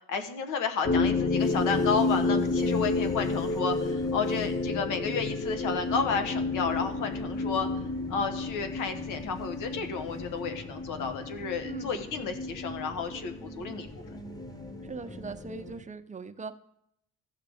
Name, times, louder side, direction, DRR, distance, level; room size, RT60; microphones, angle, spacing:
voice 1, 0.1-7.7 8.1-13.9, left 5 dB, 90° left, 6 dB, 1.3 m, -32 dB
sound 1, 0.8-15.7, left 3 dB, 30° left, 0.5 m, -31 dB
sound 2, 1.3-15.8, left 1 dB, 10° left, 1.1 m, -47 dB
voice 2, 14.8-16.5, right 4 dB, 25° right, 8 dB, 0.7 m, -40 dB
15.0 x 6.5 x 3.5 m, 0.75 s
cardioid pair, 90°, 30 cm